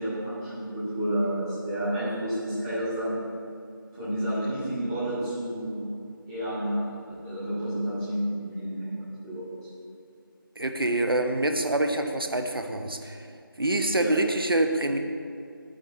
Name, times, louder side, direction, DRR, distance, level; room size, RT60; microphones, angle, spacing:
voice 1, 0.0-3.2 3.9-5.8 6.3-9.6 13.9-14.1, right 1 dB, 10° right, -13 dB, 2.4 m, -30 dB
voice 2, 10.6-13.2 13.6-15.0, right 1 dB, 75° right, 5 dB, 1.1 m, -26 dB
11.0 x 9.3 x 4.1 m, 2.4 s
figure-of-eight pair, 170°, 12 cm